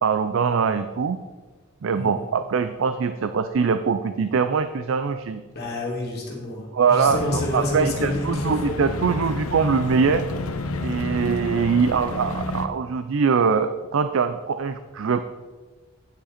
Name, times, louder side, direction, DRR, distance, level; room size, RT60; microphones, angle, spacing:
voice 1, 0.0-1.2 1.8-5.4 6.7-10.2 10.8-15.2, right 5 dB, 65° right, 10 dB, 0.4 m, -22 dB
voice 2, 1.9-2.3 5.5-8.9 9.2-9.3, left 1 dB, 50° left, -3 dB, 2.5 m, -30 dB
sound 1, 7.1-12.7, left 2 dB, 80° left, 0.8 m, -30 dB
9.4 x 7.7 x 4.2 m, 1.3 s
head